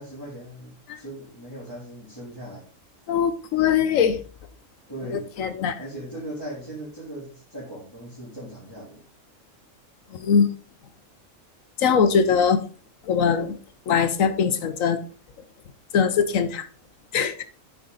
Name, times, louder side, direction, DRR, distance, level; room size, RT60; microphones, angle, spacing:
voice 1, 0.0-2.6 4.9-5.3 5.8-9.0, right 1 dB, 15° left, 3.4 m, -38 dB
voice 2, 3.1-4.2 5.1-5.7 10.2-10.5 11.8-12.6 13.1-13.6 13.9-15.0 15.9-16.6 17.1-17.4, left 6 dB, 90° left, 1.3 m, -21 dB
8.9 x 5.0 x 3.9 m
omnidirectional pair, 1.3 m